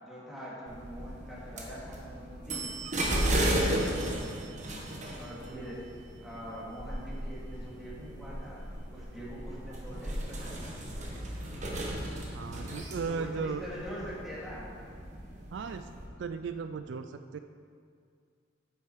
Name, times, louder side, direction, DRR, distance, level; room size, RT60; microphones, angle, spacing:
voice 1, 0.0-2.7 3.0-4.4 5.1-5.8 6.2-8.6 8.9-10.8 13.1-14.7, equal, ahead, -9 dB, 2.5 m, -43 dB
sound 1, 0.7-16.1, right 1 dB, 40° right, 1.3 m, -35 dB
voice 2, 12.3-13.6 15.5-15.9 16.2-17.4, right 5 dB, 70° right, 9 dB, 0.3 m, -36 dB
9.1 x 7.7 x 4.7 m, 2.2 s
head